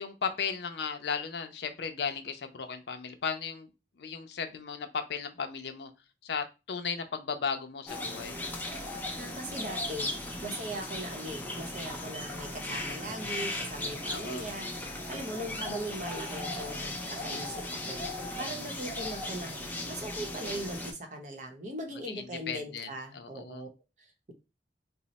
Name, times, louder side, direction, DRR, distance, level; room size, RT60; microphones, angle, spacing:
voice 1, 0.0-3.7 4.0-5.9 6.2-8.4 14.1-14.5 22.0-22.9 23.1-23.6, left 6 dB, 65° left, 8 dB, 0.5 m, -35 dB
sound 1, 7.9-20.9, left 1 dB, 10° left, 0.5 m, -37 dB
voice 2, 9.2-10.1 10.4-19.5 19.9-23.7 24.0-24.3, right 1 dB, 45° right, 4 dB, 0.7 m, -40 dB
3.0 x 2.0 x 4.0 m, 0.28 s
head